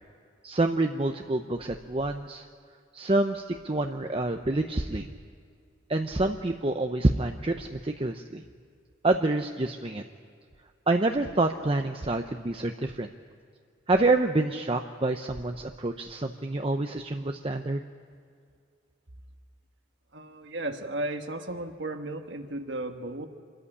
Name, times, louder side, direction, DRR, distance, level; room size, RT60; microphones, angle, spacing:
voice 1, 0.4-2.5 2.9-5.1 5.9-8.4 9.0-10.0 10.9-13.1 13.9-17.8, right 2 dB, 30° right, 5 dB, 0.7 m, -27 dB
voice 2, 20.1-23.3, right 2 dB, 60° right, 5 dB, 1.5 m, -34 dB
27.0 x 14.0 x 9.8 m, 2.2 s
head